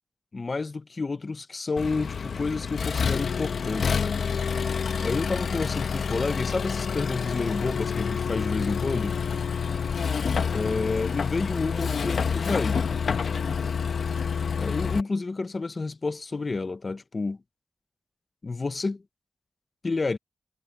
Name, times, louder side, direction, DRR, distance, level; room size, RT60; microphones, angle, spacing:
voice 1, 0.3-4.0 5.0-9.2 10.5-12.8 14.6-17.4 18.4-19.0 19.8-20.2, left 3 dB, 40° left, 0.6 m, -30 dB
Accelerating revving vroom, 1.8-15.0, left 6 dB, 80° left, 0.8 m, -28 dB
wide cardioid pair, 130°, 0 cm